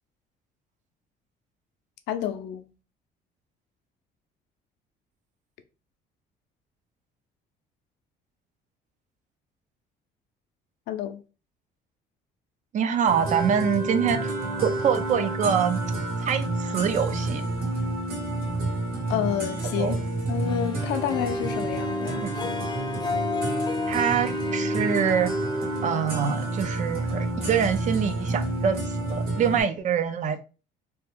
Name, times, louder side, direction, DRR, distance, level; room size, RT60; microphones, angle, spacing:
voice 1, 2.1-2.6 10.9-11.2 19.1-22.2, left 11 dB, 85° left, 0.5 m, -29 dB
voice 2, 12.7-14.3 14.6-15.8 16.2-17.4 19.8-20.0 22.2-22.3 23.9-25.3 25.8-30.4, right 7 dB, 45° right, 0.5 m, -25 dB
sound 1, 13.1-29.6, right 2 dB, 65° right, 1.6 m, -29 dB
Harp, 20.5-26.7, left 3 dB, 25° left, 0.5 m, -32 dB
2.8 x 2.3 x 3.4 m
cardioid pair, 110°, 17 cm